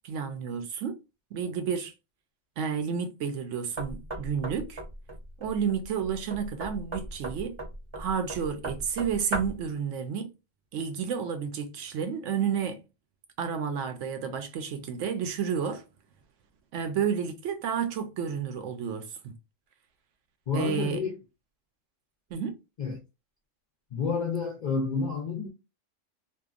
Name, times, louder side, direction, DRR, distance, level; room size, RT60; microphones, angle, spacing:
voice 1, 0.0-1.0 1.3-1.9 2.6-4.8 5.4-7.5 8.0-10.3 10.7-12.8 13.4-15.8 16.7-19.3 20.5-21.0 22.3-22.6, right 7 dB, 75° right, 0.9 m, -31 dB
Knock, 3.8-9.7, right 1 dB, 30° right, 0.6 m, -37 dB
voice 2, 20.5-21.2 22.8-23.0 23.9-25.5, left 5 dB, 60° left, 0.5 m, -29 dB
2.8 x 2.2 x 2.4 m
omnidirectional pair, 1.3 m